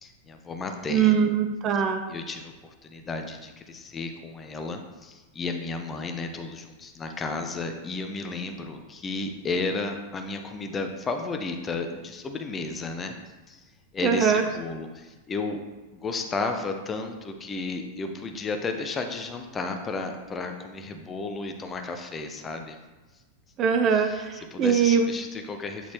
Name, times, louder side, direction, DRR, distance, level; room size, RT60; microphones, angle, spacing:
voice 1, 0.0-1.1 2.1-13.1 13.5-13.6 13.9-15.6 15.9-22.8 23.9-24.2 24.5-25.9, left 3 dB, 20° left, 5 dB, 0.7 m, -33 dB
voice 2, 0.9-2.0 14.0-14.4 23.6-25.1, right 7 dB, 30° right, 6 dB, 0.5 m, -22 dB
8.4 x 4.0 x 3.1 m, 1.2 s
figure-of-eight pair, 90°, 0 cm